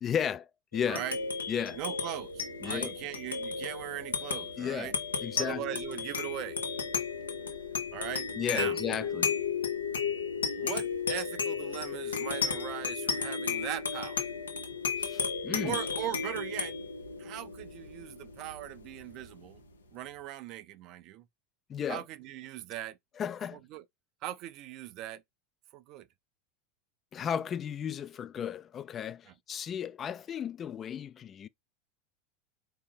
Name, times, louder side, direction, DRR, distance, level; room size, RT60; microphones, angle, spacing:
voice 1, 0.0-0.5 0.7-1.0 1.5-1.8 2.6-2.9 4.6-4.9 5.2-5.6 8.4-9.3 15.0-15.8 21.7-22.0 23.2-23.6 27.1-31.5, left 8 dB, 35° left, 0.3 m, -34 dB
sound 1, 0.7-19.6, left 5 dB, 85° left, 0.8 m, -34 dB
voice 2, 0.9-1.2 1.8-5.0 5.4-6.6 7.9-8.8 10.6-14.3 15.6-16.7 17.2-19.6 19.9-21.2 21.9-23.0 23.5-23.8 24.2-25.2 25.7-26.1 29.3-29.4, right 13 dB, 50° right, 0.4 m, -39 dB
4.5 x 2.9 x 3.5 m
hypercardioid pair, 85°, 0 cm